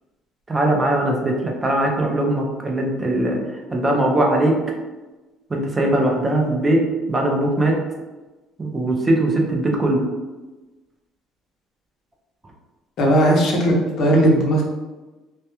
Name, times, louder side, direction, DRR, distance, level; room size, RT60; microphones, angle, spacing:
voice 1, 0.5-4.6 5.5-7.8 8.6-10.0, right 1 dB, 15° right, 0 dB, 0.4 m, -20 dB
voice 2, 13.0-14.6, right 1 dB, 50° left, -2 dB, 0.6 m, -17 dB
2.2 x 2.1 x 2.9 m, 1.2 s
cardioid pair, 145°, 0 cm